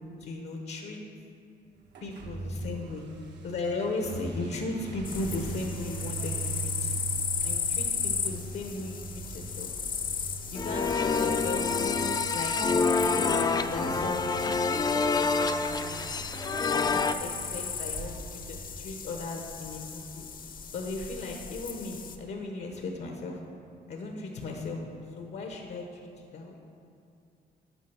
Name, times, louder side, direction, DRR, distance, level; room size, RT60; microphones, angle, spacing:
voice 1, 0.2-1.0 2.0-3.0 3.4-7.0 7.4-9.7 10.5-11.8 12.3-12.6 13.1-15.8 16.7-20.2 20.7-23.4 23.9-24.8 25.2-26.0 26.3-26.6, left 2 dB, 75° left, 2 dB, 1.0 m, -37 dB
sound 1, 1.9-19.4, right 5 dB, 80° right, 0.9 m, -41 dB
sound 2, 5.0-22.2, left 6 dB, 50° left, 0.7 m, -36 dB
sound 3, 10.6-17.1, left 4 dB, 20° left, 0.3 m, -27 dB
8.4 x 6.4 x 5.9 m, 2.5 s
cardioid pair, 105°, 18 cm